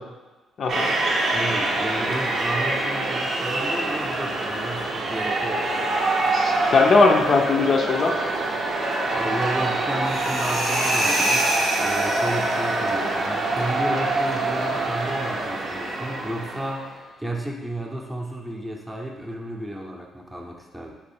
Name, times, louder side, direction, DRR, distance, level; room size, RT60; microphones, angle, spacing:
voice 1, 0.6-0.9 6.3-8.2, left 4 dB, 50° left, 2 dB, 0.4 m, -19 dB
sound 1, 0.7-16.9, right 2 dB, 55° right, 0.6 m, -25 dB
voice 2, 1.3-6.1 9.1-20.9, right 1 dB, 10° right, 0 dB, 0.6 m, -32 dB
Flyby high tension, 10.0-12.8, right 1 dB, 85° right, 1.0 m, -25 dB
3.1 x 3.0 x 4.3 m, 1.3 s
cardioid pair, 90°, 0 cm